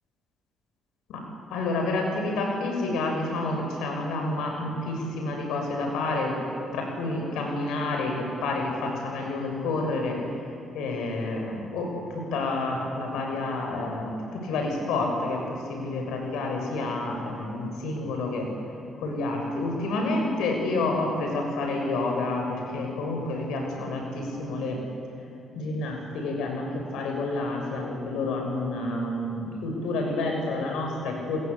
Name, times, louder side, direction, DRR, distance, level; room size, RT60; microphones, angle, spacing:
voice 1, 1.5-6.3 6.7-10.2 10.7-18.5 19.0-24.8 25.5-31.4, left 2 dB, 90° left, 2 dB, 6.5 m, -29 dB
29.0 x 20.0 x 8.4 m, 2.6 s
cardioid pair, 90°, 0 cm